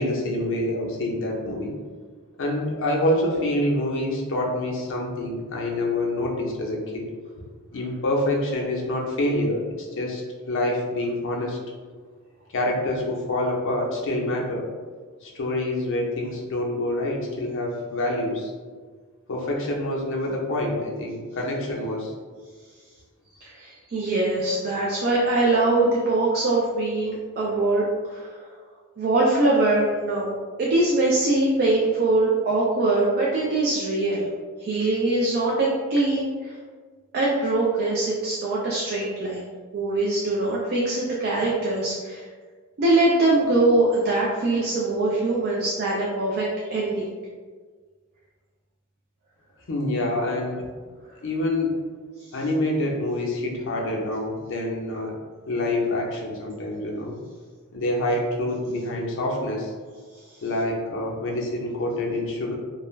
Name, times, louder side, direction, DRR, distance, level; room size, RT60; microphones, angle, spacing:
voice 1, 0.0-1.7 2.4-7.1 7.7-10.2 10.5-11.6 12.5-14.7 15.2-18.5 19.3-22.1 49.7-50.6 51.2-51.8 52.3-55.1 55.5-57.1 57.7-59.7 60.4-62.5, left 1 dB, 60° left, -1 dB, 0.5 m, -26 dB
voice 2, 23.4-28.5 29.0-30.3 30.6-34.3 34.6-36.5 37.1-39.4 39.7-42.2 42.8-47.0 52.3-52.4, right 2 dB, 45° right, -4 dB, 0.4 m, -22 dB
2.3 x 2.1 x 3.1 m, 1.5 s
head